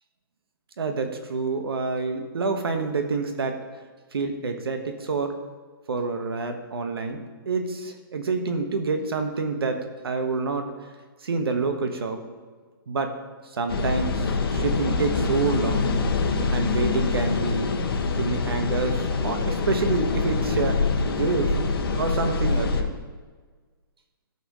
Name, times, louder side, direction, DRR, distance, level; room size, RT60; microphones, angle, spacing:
voice 1, 0.8-3.6 4.1-5.4 5.9-10.7 11.2-12.2 12.9-13.1 13.4-15.9 16.5-17.7 18.2-20.8 21.0-21.5 22.0-23.0, right 4 dB, 85° right, 6 dB, 1.5 m, -27 dB
sound 1, 13.7-22.8, left 4 dB, 80° left, 1.3 m, -25 dB
17.0 x 6.1 x 3.2 m, 1.4 s
hypercardioid pair, 175°, 12 cm